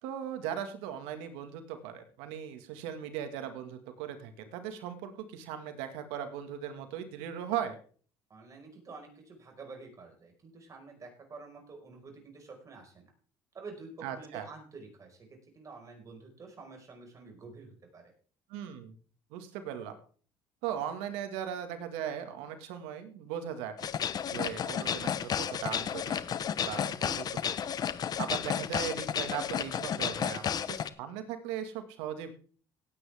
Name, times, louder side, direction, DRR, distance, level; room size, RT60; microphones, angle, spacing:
voice 1, 0.0-7.8 14.0-14.5 18.5-19.0 19.3-20.0 20.6-23.7 24.3-26.2 26.6-27.6 28.2-32.3, right 9 dB, 90° right, 8 dB, 1.9 m, -38 dB
voice 2, 8.3-13.1 13.5-18.1, right 4 dB, 35° right, 2 dB, 5.1 m, -49 dB
sound 1, 23.8-30.9, left 8 dB, 45° left, 0.9 m, -32 dB
17.5 x 9.1 x 3.5 m, 0.42 s
cardioid pair, 100°, 9 cm